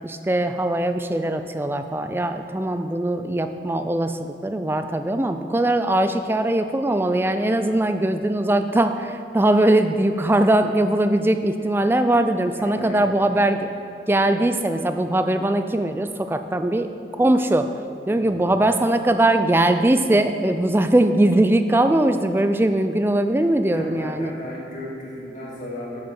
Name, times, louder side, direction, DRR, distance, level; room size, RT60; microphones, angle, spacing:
voice 1, 0.0-13.7 14.1-17.7 18.0-24.3, right 1 dB, 15° right, 8 dB, 0.3 m, -21 dB
voice 2, 12.6-13.0 18.1-18.4 23.6-26.0, left 1 dB, 45° left, -5 dB, 2.1 m, -35 dB
7.4 x 6.8 x 5.9 m, 2.7 s
head